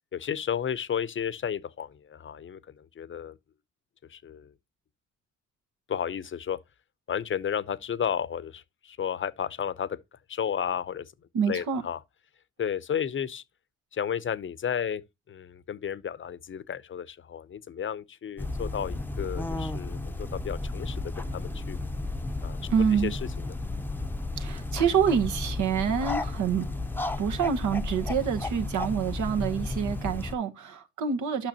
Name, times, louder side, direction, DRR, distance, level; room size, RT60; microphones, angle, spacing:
voice 1, 0.1-3.4 4.1-4.5 5.9-6.6 7.1-11.1 11.5-12.0 12.6-13.4 13.9-15.0 15.3-21.8 22.4-22.6 22.9-23.6, left 8 dB, 40° left, 0.7 m, -33 dB
voice 2, 11.3-11.8 22.7-23.1 24.4-26.7 27.2-31.5, right 7 dB, 75° right, 1.4 m, -27 dB
sound 1, 18.4-30.3, left 2 dB, 5° left, 0.7 m, -33 dB
8.9 x 5.8 x 2.8 m
cardioid pair, 90°, 30 cm